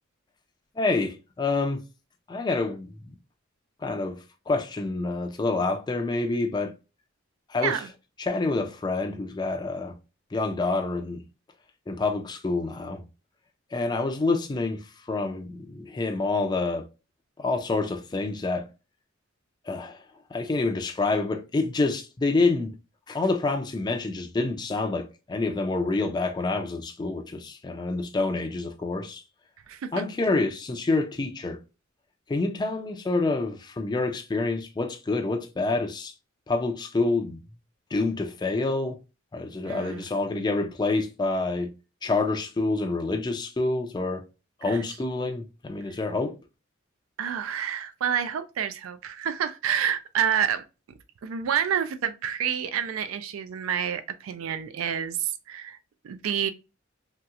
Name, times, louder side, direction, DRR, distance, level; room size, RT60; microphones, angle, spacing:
voice 1, 0.8-1.8 2.3-2.9 3.8-6.7 7.5-7.8 8.2-10.0 10.3-11.2 11.9-13.0 13.7-14.8 15.1-16.9 17.4-18.7 19.7-20.0 20.3-22.7 23.1-29.2 29.9-31.6 32.3-36.1 36.5-37.4 37.9-39.0 39.3-41.7 42.0-44.2 44.6-46.4, left 3 dB, 20° left, 0.3 m, -27 dB
voice 2, 29.7-30.0 39.6-40.1 44.6-44.9 47.2-50.7 51.2-55.8 56.0-56.5, right 8 dB, 85° right, 0.4 m, -28 dB
3.0 x 2.8 x 2.3 m
head